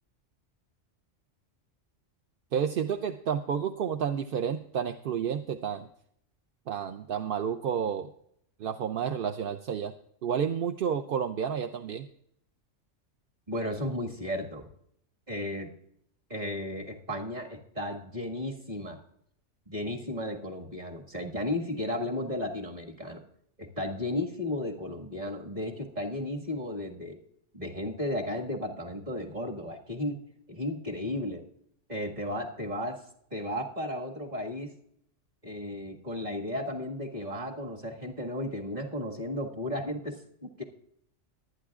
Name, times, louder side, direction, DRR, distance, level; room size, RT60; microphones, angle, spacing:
voice 1, 2.5-5.9 6.7-8.1 8.6-9.9 10.2-12.1, right 7 dB, 60° right, 7 dB, 0.7 m, -30 dB
voice 2, 13.5-14.7 15.3-15.7 16.3-19.0 19.7-23.2 23.6-27.2 27.5-30.2 30.5-31.4 31.9-33.0 33.3-34.7 35.4-40.6, left 1 dB, 35° right, 1 dB, 1.9 m, -34 dB
23.0 x 9.5 x 2.4 m, 0.69 s
omnidirectional pair, 1.3 m